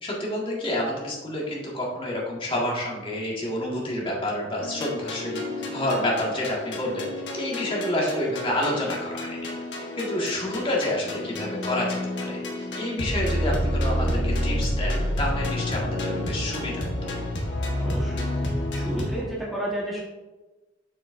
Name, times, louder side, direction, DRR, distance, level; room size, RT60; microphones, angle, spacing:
voice 1, 0.0-5.4 5.7-7.1 7.3-9.4 9.7-16.9, left 1 dB, 30° left, -3 dB, 1.7 m, -29 dB
sound 1, 4.6-19.2, left 1 dB, 70° left, 1.3 m, -29 dB
voice 2, 17.8-18.2 18.7-20.0, right 1 dB, ahead, -6 dB, 1.3 m, -31 dB
7.2 x 6.2 x 2.6 m, 1.1 s
head